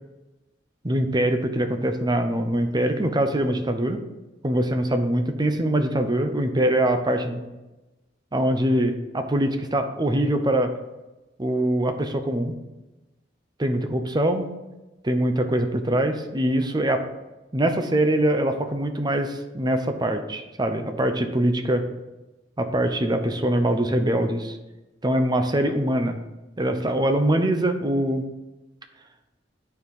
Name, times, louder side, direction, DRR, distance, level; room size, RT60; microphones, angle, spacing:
voice 1, 0.8-4.0 4.4-7.4 8.3-10.7 11.4-12.5 13.6-14.5 15.0-17.0 17.5-21.8 22.6-24.6 25.0-26.2 26.6-28.3, right 1 dB, 25° right, 7 dB, 0.7 m, -23 dB
9.3 x 4.7 x 5.4 m, 1.1 s
head